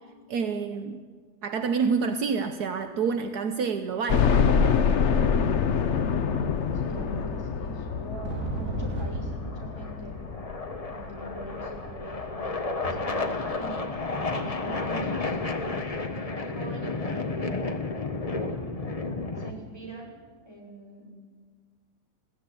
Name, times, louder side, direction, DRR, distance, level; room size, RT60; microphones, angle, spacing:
voice 1, 0.3-1.0 1.4-4.3, right 5 dB, 70° right, 8 dB, 1.5 m, -28 dB
sound 1, 2.8-2.9 3.9-4.0 5.2-5.3 5.6-5.7 6.2-16.3 16.7-16.8, right 2 dB, 50° right, 3.5 m, -40 dB
sound 2, 4.1-13.0 13.5-13.6 14.0-14.1 15.2-15.3 15.6-15.7, left 6 dB, 50° left, 1.1 m, -26 dB
sound 3, 4.2-19.5, left 3 dB, 25° left, 1.3 m, -33 dB
voice 2, 6.8-10.2 10.8-12.3 12.8-13.7 14.3-15.4 16.1-17.7 19.4-20.1 20.4-21.1, right 1 dB, 15° right, -2 dB, 6.1 m, -43 dB
20.5 x 16.0 x 9.6 m, 1.5 s
omnidirectional pair, 1.7 m